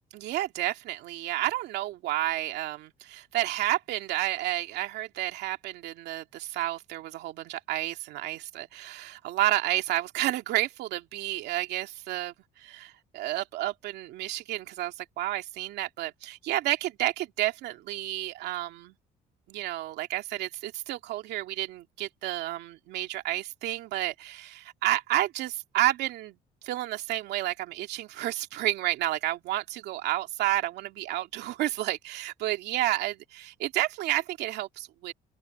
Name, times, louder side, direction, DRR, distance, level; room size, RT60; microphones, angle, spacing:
voice 1, 0.1-18.9 19.5-26.4 26.6-35.1, right 15 dB, 80° right, 2.5 m, -31 dB
open air
cardioid pair, 110°, 17 cm